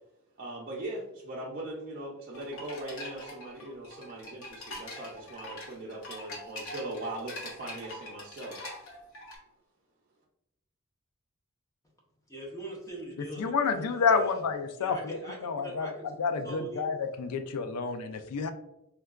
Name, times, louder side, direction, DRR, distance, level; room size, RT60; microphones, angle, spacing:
voice 1, 0.4-8.6, right 1 dB, 40° right, -5 dB, 0.4 m, -40 dB
sound 1, 2.3-9.4, left 1 dB, 70° left, 0.9 m, -43 dB
voice 2, 12.3-14.4 14.8-17.0, right 1 dB, 15° left, -3 dB, 0.6 m, -43 dB
voice 3, 13.4-18.5, left 5 dB, 90° left, 8 dB, 0.4 m, -29 dB
3.7 x 2.2 x 2.3 m, 0.84 s
head